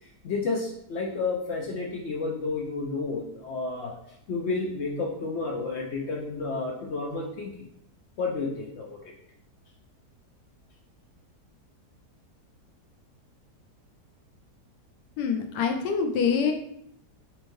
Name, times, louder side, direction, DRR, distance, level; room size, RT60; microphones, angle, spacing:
voice 1, 0.0-3.9 4.3-7.5 8.2-9.1, left 3 dB, 70° left, -1 dB, 0.6 m, -31 dB
voice 2, 15.2-16.5, left 6 dB, 85° left, 4 dB, 1.3 m, -25 dB
4.4 x 3.1 x 2.6 m, 0.72 s
omnidirectional pair, 1.8 m